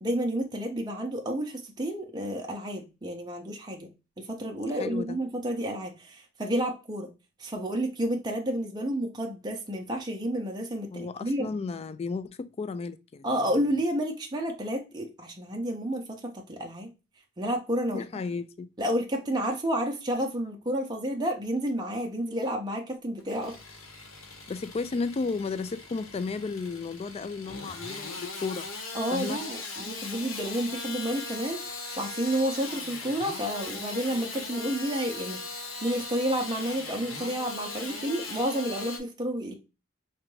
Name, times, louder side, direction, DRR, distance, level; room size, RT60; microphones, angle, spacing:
voice 1, 0.0-3.9 4.2-7.1 7.4-11.5 13.2-16.9 17.4-18.0 18.8-23.5 28.9-35.4 35.8-39.5, equal, 20° right, 0.6 m, -30 dB
voice 2, 4.7-5.2 10.9-13.3 17.9-18.7 24.5-28.7 29.1-29.4, left 4 dB, 30° left, 0.3 m, -33 dB
Engine starting / Sawing, 23.2-39.0, left 3 dB, 85° left, 1.1 m, -39 dB
4.9 x 2.2 x 3.1 m
head